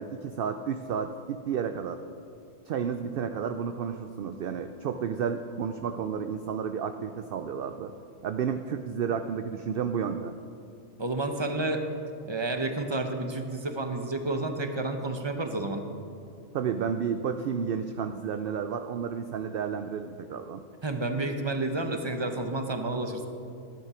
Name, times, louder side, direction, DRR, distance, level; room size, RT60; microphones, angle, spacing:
voice 1, 0.0-2.0 2.7-7.9 8.2-10.3 16.5-20.6, right 7 dB, 65° right, 8 dB, 0.6 m, -31 dB
voice 2, 11.0-11.9 12.2-15.8 20.8-23.3, right 2 dB, 25° right, 6 dB, 0.7 m, -30 dB
13.0 x 9.3 x 5.0 m, 2.4 s
omnidirectional pair, 1.3 m